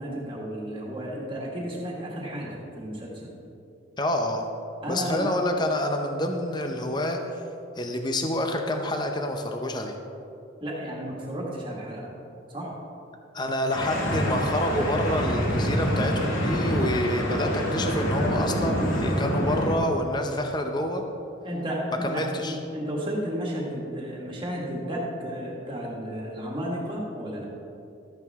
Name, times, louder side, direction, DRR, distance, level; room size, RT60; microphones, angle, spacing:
voice 1, 0.0-3.1 4.8-5.3 10.6-12.1 12.5-12.7 21.4-27.5, equal, 25° right, -3 dB, 1.8 m, -33 dB
voice 2, 4.0-4.5 4.9-7.2 7.8-10.0 13.3-21.1 22.0-22.6, left 1 dB, 20° left, 4 dB, 0.6 m, -28 dB
sound 1, 13.7-19.7, equal, 85° left, 2.1 m, -26 dB
12.5 x 8.9 x 3.6 m, 2.7 s
head